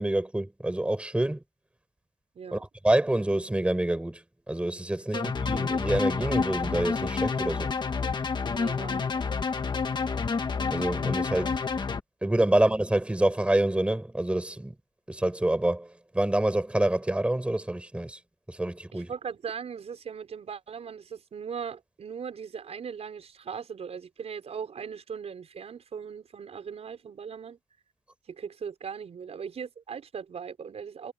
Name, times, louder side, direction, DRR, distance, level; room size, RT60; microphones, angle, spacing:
voice 1, 0.0-1.4 2.5-4.2 4.5-7.7 10.7-11.6 12.2-14.7 15.1-18.2 18.5-19.1, right 1 dB, 10° right, 6.0 m, -27 dB
sound 1, 5.1-12.0, left 5 dB, 35° left, 1.7 m, -29 dB
voice 2, 8.5-9.2 18.9-27.6 28.3-31.1, right 6 dB, 50° right, 5.5 m, -39 dB
wide cardioid pair, 145°, 14 cm